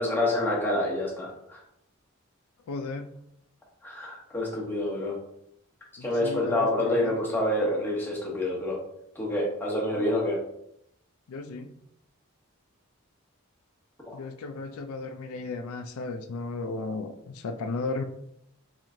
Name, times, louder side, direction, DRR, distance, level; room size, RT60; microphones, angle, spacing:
voice 1, 0.0-1.6 3.8-5.1 6.0-8.8 9.1-10.4 14.1-14.2, left 1 dB, 10° left, -4 dB, 0.9 m, -27 dB
voice 2, 2.7-3.2 6.0-7.4 9.9-10.2 11.3-11.7 14.1-18.0, left 3 dB, 90° left, 7 dB, 0.4 m, -35 dB
3.2 x 3.1 x 3.6 m, 0.77 s
head